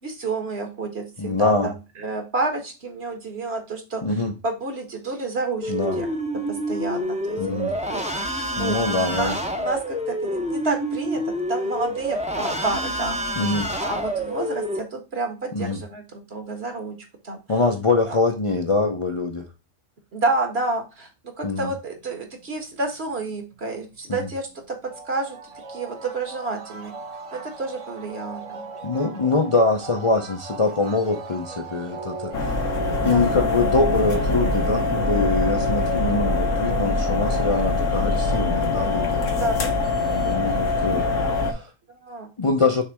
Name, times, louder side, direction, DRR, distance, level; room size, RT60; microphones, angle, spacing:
voice 1, 0.0-6.1 6.5-7.6 7.9-11.2 11.5-13.2 13.8-17.0 17.2-17.4 18.1-18.2 20.1-25.4 25.7-26.9 27.3-28.6 33.0-33.4 39.4-40.3 41.9-42.3, right 3 dB, 55° right, 1.8 m, -30 dB
voice 2, 1.2-1.7 4.0-4.3 5.7-6.0 7.4-7.7 8.6-9.4 13.4-13.7 15.5-15.8 17.5-19.5 21.4-21.7 24.1-24.2 28.8-32.6 33.0-39.2 40.0-41.1 41.3-41.7 42.4-42.8, left 3 dB, 35° left, 0.6 m, -23 dB
sound 1, 5.6-14.8, equal, 5° right, 0.7 m, -28 dB
sound 2, 21.8-22.6 22.9-24.2 24.6-24.7 24.9-41.1, right 3 dB, 80° right, 1.7 m, -37 dB
sound 3, 32.3-41.5, left 3 dB, 80° left, 1.6 m, -23 dB
6.5 x 3.3 x 4.7 m
omnidirectional pair, 1.3 m